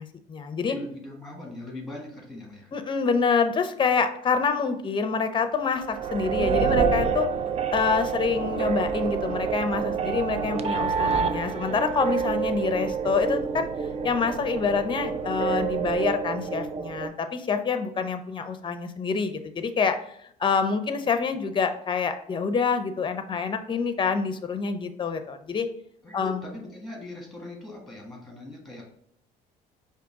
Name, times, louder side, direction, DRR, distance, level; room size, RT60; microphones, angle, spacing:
voice 1, 0.0-0.8 2.7-7.3 7.7-13.7 14.0-20.0 20.4-25.7 26.1-26.4, left 5 dB, 30° left, 9 dB, 0.6 m, -26 dB
voice 2, 0.7-2.7 26.0-28.8, left 2 dB, ahead, -1 dB, 1.8 m, -40 dB
sound 1, 5.7-17.1, right 6 dB, 40° right, 0.4 m, -28 dB
5.0 x 2.7 x 3.5 m, 0.70 s
cardioid pair, 110°, 17 cm